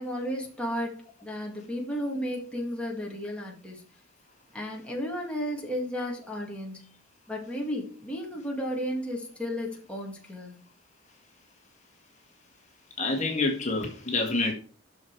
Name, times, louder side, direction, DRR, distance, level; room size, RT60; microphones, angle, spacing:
voice 1, 0.0-3.8 4.5-6.9 7.3-10.6, equal, 5° left, 2.0 m, -33 dB
voice 2, 13.0-14.5, left 3 dB, 35° left, 1.8 m, -27 dB
11.5 x 6.3 x 4.7 m
head